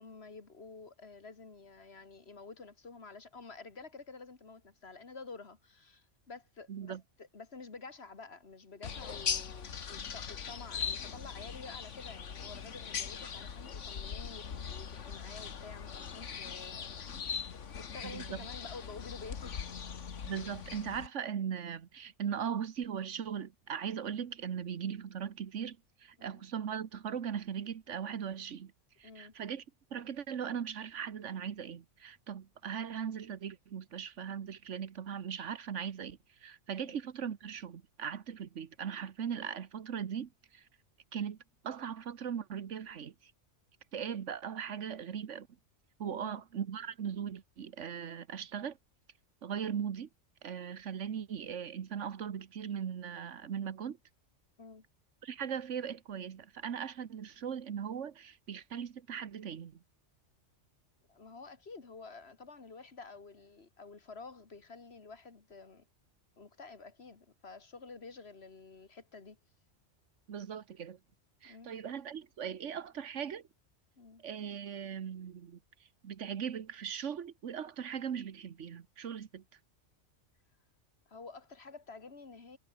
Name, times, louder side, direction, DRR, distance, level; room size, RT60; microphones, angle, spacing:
voice 1, 0.0-17.0 17.4-19.7 26.2-26.4 29.0-29.4 36.8-36.9 46.0-46.4 54.6-54.8 61.1-65.9 66.4-69.4 71.4-71.7 74.0-74.2 81.1-82.6, left 4 dB, 55° left, 2.3 m, -50 dB
voice 2, 6.7-7.0 18.0-18.5 20.3-28.7 29.0-29.6 29.9-40.7 41.1-41.4 41.6-43.3 43.9-45.5 46.0-48.8 49.4-50.1 50.4-54.0 55.2-59.8 70.3-71.0 71.4-73.5 74.2-75.6 76.0-79.4, right 8 dB, 75° right, 1.4 m, -39 dB
sound 1, 8.8-21.1, left 7 dB, 75° left, 1.7 m, -40 dB
omnidirectional pair, 1.3 m